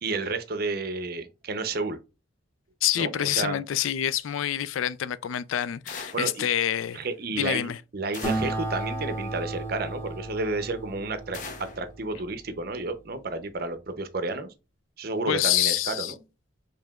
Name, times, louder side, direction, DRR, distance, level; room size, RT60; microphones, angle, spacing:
voice 1, 0.0-2.0 3.0-3.6 6.1-6.4 6.9-14.5 15.0-16.1, right 3 dB, 50° right, 0.6 m, -31 dB
voice 2, 2.8-7.0 7.3-7.8 15.3-16.1, left 11 dB, 85° left, 0.3 m, -27 dB
sound 1, 5.9-6.4 8.1-8.7 11.3-11.9, left 4 dB, 40° left, 0.7 m, -40 dB
Acoustic guitar, 8.2-13.1, right 1 dB, 10° left, 1.0 m, -34 dB
4.8 x 3.2 x 2.3 m
head